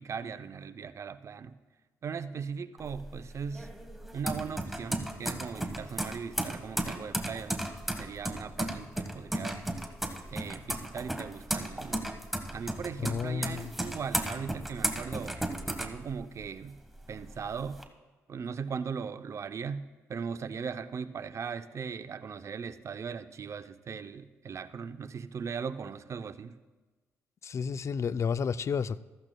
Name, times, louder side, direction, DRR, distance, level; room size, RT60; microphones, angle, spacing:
voice 1, 0.0-1.5 2.0-3.7 4.1-7.6 8.0-9.6 10.3-12.0 12.5-16.8 17.1-17.8 18.3-19.8 20.1-26.6, right 6 dB, 50° right, 0.5 m, -38 dB
sound 1, 2.8-16.6 17.0-17.8, right 1 dB, ahead, 1.2 m, -35 dB
voice 2, 13.0-13.7 27.4-29.0, left 6 dB, 50° left, 0.4 m, -31 dB
14.5 x 13.5 x 2.3 m
supercardioid pair, 55°, 6 cm